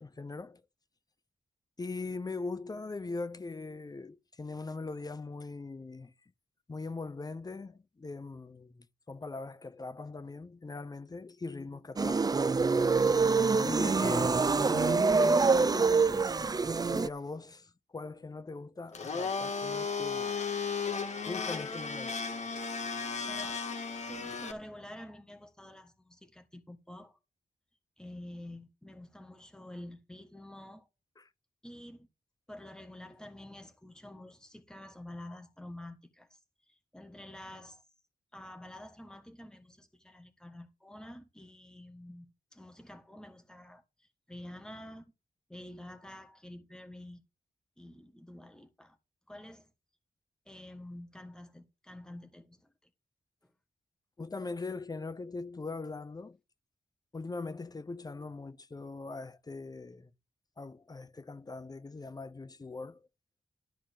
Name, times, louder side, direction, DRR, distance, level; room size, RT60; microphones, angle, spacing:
voice 1, 0.0-0.6 1.8-6.1 6.7-12.4 13.6-16.4 16.9-20.3 21.3-22.2 31.2-31.3 54.2-56.4 57.1-60.1 60.6-63.0, left 3 dB, 25° left, 0.8 m, -41 dB
sound 1, 12.0-17.1, right 4 dB, 25° right, 0.5 m, -25 dB
Domestic sounds home sounds, 18.9-24.5, left 5 dB, 50° left, 1.7 m, -35 dB
voice 2, 23.2-23.7 23.9-27.2 28.0-30.9 31.6-32.1 32.5-36.4 36.7-37.8 38.3-45.1 45.5-47.2 47.8-49.0 49.3-49.7 50.4-52.9 53.4-53.5, left 1 dB, 5° left, 1.5 m, -48 dB
13.0 x 4.4 x 7.5 m
wide cardioid pair, 160°, 15 cm